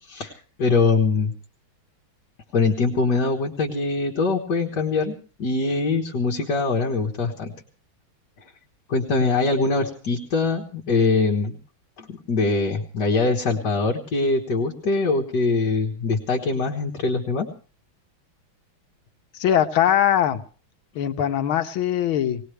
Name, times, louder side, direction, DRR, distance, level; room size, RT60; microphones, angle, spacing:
voice 1, 0.1-1.3 2.5-7.5 8.9-11.6 12.0-17.5, left 3 dB, 55° left, -1 dB, 2.1 m, -23 dB
voice 2, 19.3-20.4 21.0-22.4, left 10 dB, 80° left, 8 dB, 1.8 m, -21 dB
20.0 x 18.5 x 3.3 m, 0.38 s
omnidirectional pair, 2.2 m